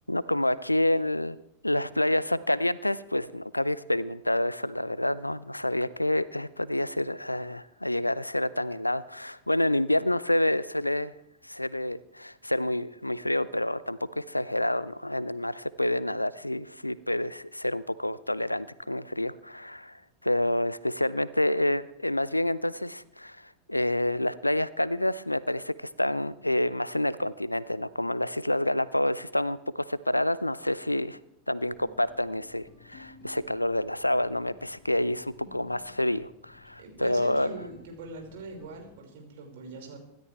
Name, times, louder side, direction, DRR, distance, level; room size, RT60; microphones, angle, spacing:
voice 1, 0.1-1.4 1.6-11.1 11.4-31.2 31.5-37.6, left 1 dB, 85° left, 19 dB, 0.6 m, -28 dB
sound 1, 31.7-38.9, left 6 dB, 20° left, 6.9 m, -56 dB
voice 2, 36.8-40.0, right 3 dB, 55° right, 1 dB, 5.5 m, -42 dB
26.0 x 13.0 x 3.4 m, 0.80 s
figure-of-eight pair, 90°, 0 cm